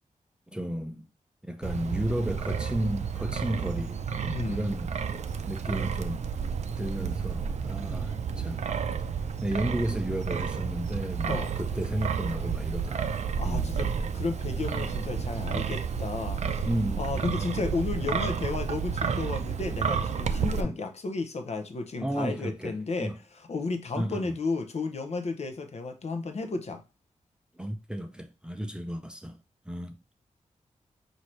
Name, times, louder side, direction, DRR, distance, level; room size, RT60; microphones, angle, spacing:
voice 1, 0.5-1.0 1.4-4.9 5.5-6.3 6.8-8.7 9.4-13.1 13.4-13.7 16.7-17.2 17.5-17.7 20.6-20.7 22.0-23.2 24.0-24.3 27.6-29.4 29.7-29.9, equal, 5° right, 0.5 m, -33 dB
Wind, 1.6-20.6, right 6 dB, 60° right, 0.4 m, -31 dB
voice 2, 4.3-4.6 11.3-11.5 13.4-16.4 17.0-26.8, left 3 dB, 55° left, 0.7 m, -33 dB
5.8 x 2.7 x 3.1 m
wide cardioid pair, 125°, 13 cm